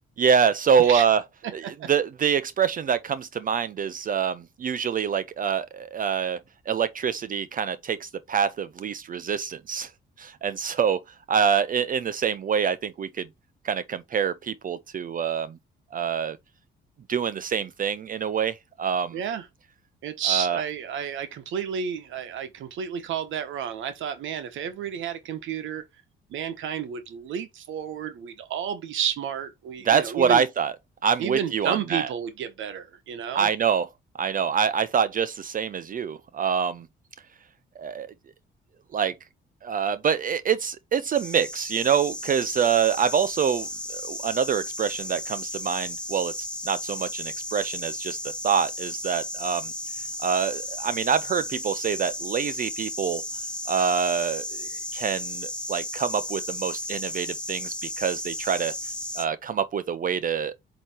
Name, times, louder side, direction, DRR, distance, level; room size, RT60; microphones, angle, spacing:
voice 1, 0.2-1.2 1.5-6.4 6.7-9.9 10.2-11.0 11.3-13.3 13.6-15.6 15.9-16.4 17.1-19.2 20.3-20.6 29.8-30.7 31.0-32.1 33.3-33.9 34.1-36.9 37.8-38.1 38.9-39.1 39.6-49.7 50.2-53.2 53.7-58.7 59.2-60.5, right 7 dB, 45° right, 0.5 m, -25 dB
voice 2, 19.1-19.5 20.0-25.8 26.3-30.4 31.2-33.5, right 8 dB, 80° right, 1.0 m, -31 dB
sound 1, 41.1-59.3, left 1 dB, 5° left, 1.1 m, -34 dB
7.8 x 3.0 x 4.4 m
cardioid pair, 90°, 20 cm